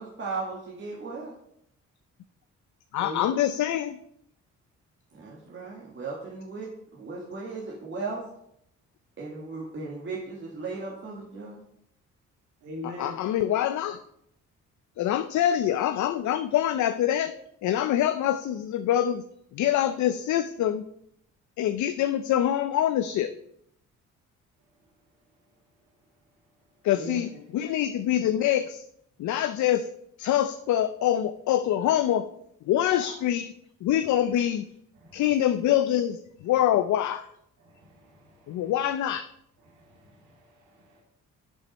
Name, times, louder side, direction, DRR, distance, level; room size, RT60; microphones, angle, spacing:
voice 1, 0.0-1.4 5.1-8.2 9.2-11.6, right 3 dB, 40° right, -4 dB, 2.0 m, -36 dB
voice 2, 2.9-4.0 12.8-14.0 15.0-17.3 17.6-19.2 19.5-20.9 21.6-23.3 26.8-28.8 29.2-29.9 30.2-32.3 32.7-33.5 33.8-34.6 35.1-36.2 36.4-37.3 38.5-39.3, left 11 dB, 70° left, 10 dB, 0.6 m, -25 dB
voice 3, 12.6-13.2 26.9-27.2 35.0-35.2 37.6-38.7 39.6-41.0, left 1 dB, 85° right, -1 dB, 2.4 m, -42 dB
7.5 x 6.4 x 5.3 m, 0.73 s
cardioid pair, 90°, 30 cm